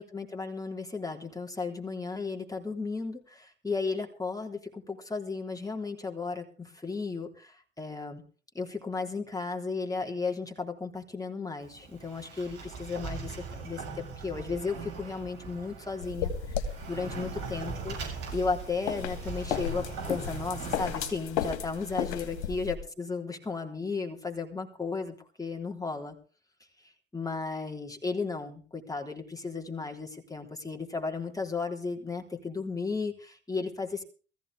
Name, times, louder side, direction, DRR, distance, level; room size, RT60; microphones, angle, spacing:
voice 1, 0.0-8.2 8.6-26.2 26.8-34.0, left 4 dB, 10° left, 3 dB, 3.6 m, -35 dB
Sliding door, 11.6-21.0, right 5 dB, 60° right, 7.2 m, -40 dB
sound 1, 16.0-22.7, left 8 dB, 75° left, 2.2 m, -35 dB
20.0 x 15.0 x 3.5 m, 0.37 s
figure-of-eight pair, 60°, 33 cm